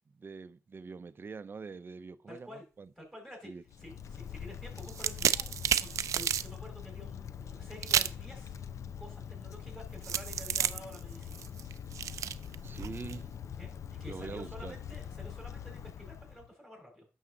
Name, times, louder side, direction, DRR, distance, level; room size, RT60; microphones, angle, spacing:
voice 1, 0.1-2.9 3.4-3.6 12.6-13.3 14.1-14.8, right 4 dB, 45° right, 0.6 m, -44 dB
voice 2, 2.3-2.7 3.0-3.5 3.8-8.5 9.0-11.4 13.6-17.1, equal, 5° left, 5.0 m, -50 dB
Wind, 3.7-16.5, left 8 dB, 75° left, 0.6 m, -44 dB
sound 1, 4.8-6.5 7.8-8.2 10.0-13.2, right 10 dB, 85° right, 0.4 m, -31 dB
9.3 x 6.4 x 3.9 m
cardioid pair, 70°, 5 cm